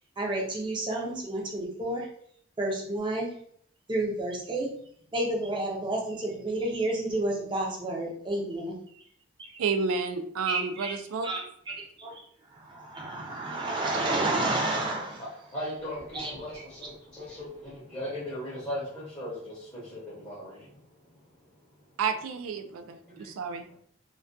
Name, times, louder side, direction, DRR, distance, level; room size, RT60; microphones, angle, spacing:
voice 1, 0.2-2.1 2.6-3.3 3.9-4.7 5.1-8.8 10.5-10.9 11.2-12.1 12.5-15.3 16.1-16.6, right 2 dB, 25° right, -1 dB, 0.4 m, -30 dB
voice 2, 9.6-11.3 22.0-23.7, right 5 dB, 85° right, 8 dB, 0.3 m, -30 dB
voice 3, 15.2-20.7 23.1-23.3, left 1 dB, 20° left, -8 dB, 0.6 m, -38 dB
2.2 x 2.2 x 2.5 m, 0.63 s
head